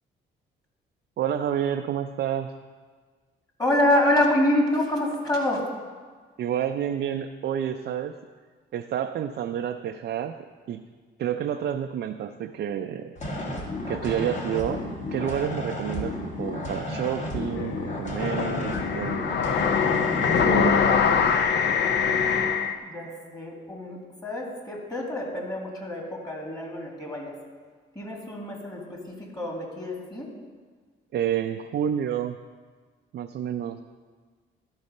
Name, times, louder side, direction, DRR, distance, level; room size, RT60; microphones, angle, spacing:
voice 1, 1.2-2.5 6.4-8.2 8.7-10.4 10.7-10.8 11.2-13.2 13.9-19.3 20.4-20.9 31.1-32.4 33.1-33.8, right 9 dB, 60° right, 5 dB, 0.4 m, -29 dB
voice 2, 3.6-5.6 22.8-27.3 28.0-30.3, left 1 dB, 20° left, -1 dB, 2.1 m, -27 dB
sound 1, 13.2-20.8, left 1 dB, 35° left, 1.7 m, -33 dB
sound 2, 17.5-22.8, left 6 dB, 60° left, 0.6 m, -23 dB
12.0 x 4.0 x 5.3 m, 1.5 s
cardioid pair, 90°, 20 cm